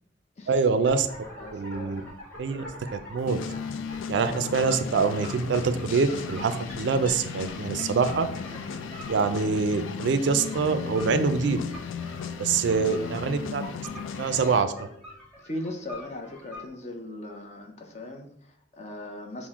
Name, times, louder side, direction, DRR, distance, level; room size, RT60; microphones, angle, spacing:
voice 1, 0.5-1.1 1.5-2.0 2.4-2.6 2.9-3.4 4.1-8.3 9.1-11.6 12.4-13.6 14.2-14.9, right 5 dB, 65° right, 10 dB, 0.3 m, -25 dB
sound 1, 0.8-16.6, equal, 10° left, 1.2 m, -45 dB
voice 2, 1.4-2.0 12.7-13.6 15.4-19.5, left 1 dB, 35° left, 3 dB, 0.5 m, -39 dB
sound 2, 3.2-14.6, left 6 dB, 85° left, 0.3 m, -35 dB
Wind instrument woodwind instrument, 7.9-15.2, left 3 dB, 55° left, 1.5 m, -50 dB
5.9 x 2.1 x 3.5 m, 0.69 s
head